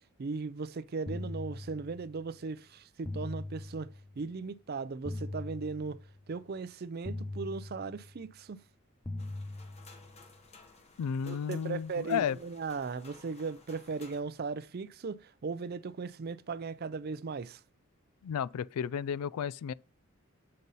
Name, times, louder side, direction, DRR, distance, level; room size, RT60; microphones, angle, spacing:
voice 1, 0.2-6.0 6.3-8.6 11.3-17.6, right 4 dB, 45° right, 0.4 m, -38 dB
sound 1, 1.1-2.2 3.0-4.2 5.0-6.2 7.0-8.2 9.0-10.2, left 2 dB, 15° left, 0.6 m, -41 dB
sound 2, 9.2-14.2, left 3 dB, 30° left, 1.0 m, -57 dB
voice 2, 11.0-12.4 18.2-19.7, left 7 dB, 85° left, 0.3 m, -33 dB
7.6 x 5.4 x 4.0 m
head